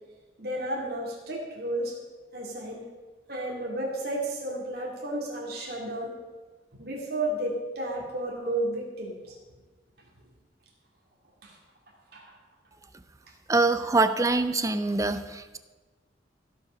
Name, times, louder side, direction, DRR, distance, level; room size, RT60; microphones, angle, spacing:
voice 1, 0.4-2.0 2.3-2.9 3.3-6.1 6.8-9.3 11.4-11.6 12.1-12.2, right 1 dB, 55° right, -3 dB, 2.7 m, -32 dB
voice 2, 13.5-15.6, right 3 dB, 15° right, 11 dB, 0.5 m, -24 dB
16.0 x 5.8 x 5.7 m, 1.3 s
head